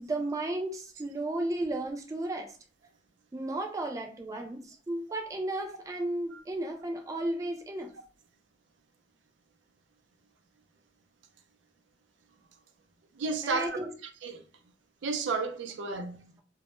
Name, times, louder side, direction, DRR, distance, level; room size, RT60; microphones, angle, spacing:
voice 1, 0.0-2.6 3.3-7.9 13.4-13.9, right 1 dB, 20° right, 0.3 m, -34 dB
voice 2, 13.2-13.8 14.2-14.4 15.0-16.3, right 4 dB, 85° right, 0.4 m, -32 dB
2.1 x 2.0 x 2.9 m
head